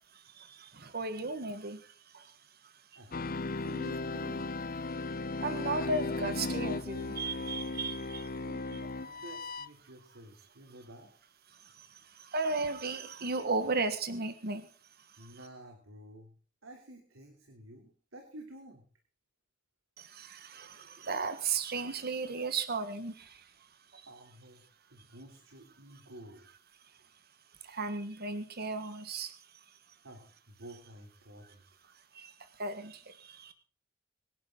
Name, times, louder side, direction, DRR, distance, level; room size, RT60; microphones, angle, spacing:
voice 1, 0.1-3.2 4.9-5.1 5.4-8.4 8.7-8.8 11.5-14.7 15.0-15.4 20.0-24.1 26.8-27.0 27.6-30.0 31.9-33.5, right 3 dB, 50° right, 10 dB, 1.5 m, -36 dB
voice 2, 2.9-3.3 3.6-4.5 8.4-11.1 15.2-16.3 16.6-18.9 24.1-24.6 24.9-26.4 30.0-31.8, right 1 dB, 85° right, 3 dB, 3.3 m, -51 dB
sound 1, 3.1-9.7, left 3 dB, 45° left, 0.8 m, -36 dB
24.0 x 11.0 x 3.9 m, 0.38 s
head